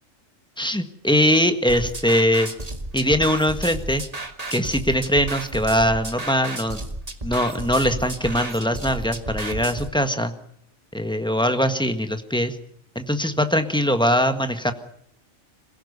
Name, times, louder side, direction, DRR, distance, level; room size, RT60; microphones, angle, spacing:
voice 1, 0.6-2.5 2.9-4.0 4.5-6.8 7.2-10.3 10.9-12.6 12.9-14.7, equal, 5° left, 8 dB, 1.5 m, -21 dB
sound 1, 1.7-9.9, right 2 dB, 30° right, 1.8 m, -33 dB
26.5 x 16.5 x 6.8 m, 0.71 s
omnidirectional pair, 1.4 m